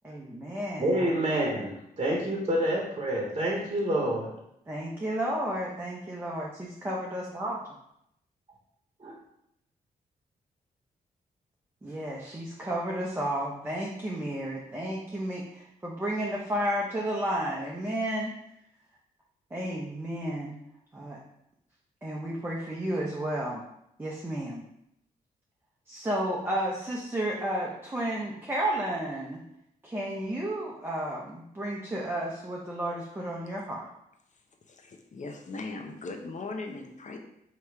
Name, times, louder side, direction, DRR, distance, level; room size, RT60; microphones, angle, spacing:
voice 1, 0.0-1.4 2.1-2.2 4.7-6.5 6.8-7.6 11.8-18.3 19.5-20.6 20.9-21.2 22.0-23.6 24.0-24.6 25.9-29.4 29.8-33.9, right 1 dB, 15° right, -3 dB, 0.7 m, -32 dB
voice 2, 0.8-4.3 9.0-9.1, right 1 dB, 35° right, -2 dB, 1.1 m, -28 dB
voice 3, 34.7-37.2, left 3 dB, 45° left, 3 dB, 0.7 m, -39 dB
3.1 x 2.9 x 4.6 m, 0.77 s
cardioid pair, 60°, 17 cm